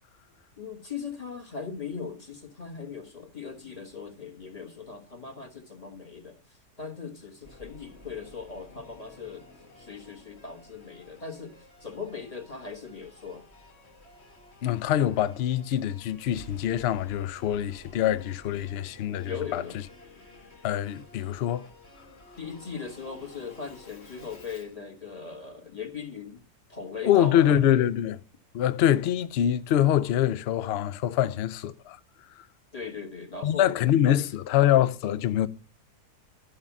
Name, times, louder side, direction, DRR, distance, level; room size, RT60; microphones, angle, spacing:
voice 1, 0.6-9.4 9.8-13.4 19.2-19.8 22.4-26.4 26.7-27.9 32.7-33.6 34.1-34.2, left 5 dB, 25° left, 1.5 m, -39 dB
Singing / Musical instrument, 7.4-24.8, left 2 dB, 40° left, 1.7 m, -52 dB
voice 2, 14.6-19.8 20.6-21.7 27.0-28.2 28.5-32.0 32.4-32.5 33.4-35.5, left 11 dB, 70° left, 0.6 m, -24 dB
11.5 x 5.5 x 7.2 m
omnidirectional pair, 1.7 m